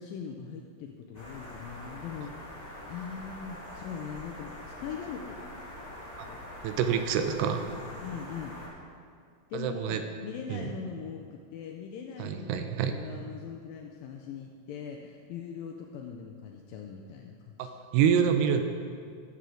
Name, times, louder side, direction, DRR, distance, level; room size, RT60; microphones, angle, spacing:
voice 1, 0.0-4.5 4.8-5.5 6.3-6.4 8.0-8.6 9.5-17.8, left 7 dB, 85° left, 2 dB, 2.0 m, -41 dB
sound 1, 1.1-8.7, left 1 dB, 30° left, 0.6 m, -44 dB
voice 2, 6.6-7.7 9.5-10.0 10.5-10.6 12.2-12.9 17.6-18.6, right 8 dB, 85° right, 7 dB, 2.7 m, -27 dB
14.5 x 6.8 x 3.8 m, 2.2 s
omnidirectional pair, 4.7 m